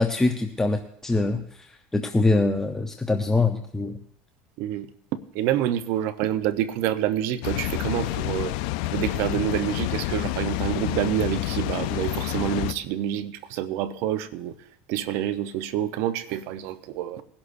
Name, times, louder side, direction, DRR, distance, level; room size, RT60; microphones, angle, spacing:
voice 1, 0.0-4.0, left 2 dB, 10° left, 5 dB, 0.7 m, -24 dB
voice 2, 5.1-8.6 8.9-14.5 14.9-17.2, right 11 dB, 70° right, 13 dB, 0.8 m, -27 dB
Water, 7.4-12.7, left 17 dB, 75° left, 0.5 m, -28 dB
20.5 x 11.5 x 2.6 m, 0.67 s
supercardioid pair, 105°, 4 cm